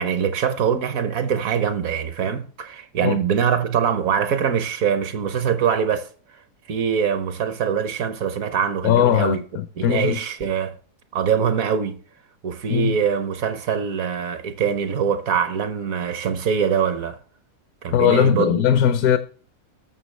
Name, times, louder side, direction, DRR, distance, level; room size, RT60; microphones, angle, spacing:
voice 1, 0.0-6.1 6.7-9.4 9.8-10.7 11.1-12.0 12.4-17.2 17.8-18.6, right 7 dB, 65° right, 1.1 m, -23 dB
voice 2, 8.8-10.2 12.7-13.0 17.9-19.2, left 10 dB, 70° left, 1.0 m, -19 dB
19.5 x 6.7 x 3.2 m
omnidirectional pair, 1.7 m